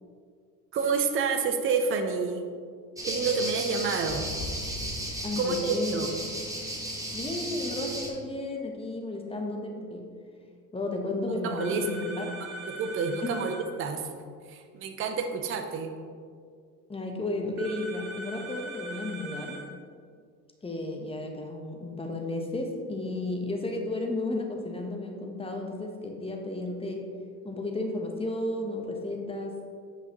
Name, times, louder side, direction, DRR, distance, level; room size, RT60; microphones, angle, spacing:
voice 1, 0.7-2.5 3.0-4.3 5.4-6.1 11.3-11.9 12.4-14.0 14.5-15.9, right 5 dB, 25° right, 5 dB, 0.6 m, -29 dB
sound 1, 3.0-8.1, right 1 dB, 5° right, 1.3 m, -34 dB
voice 2, 5.2-5.9 7.1-10.0 10.7-12.4 13.2-13.3 16.9-19.6 20.6-27.0 27.4-29.6, left 2 dB, 10° left, 2 dB, 1.0 m, -33 dB
sound 2, 11.6-13.6 17.6-19.6, right 2 dB, 65° right, 1.5 m, -40 dB
7.8 x 5.6 x 3.0 m, 2.1 s
hypercardioid pair, 75°, 48 cm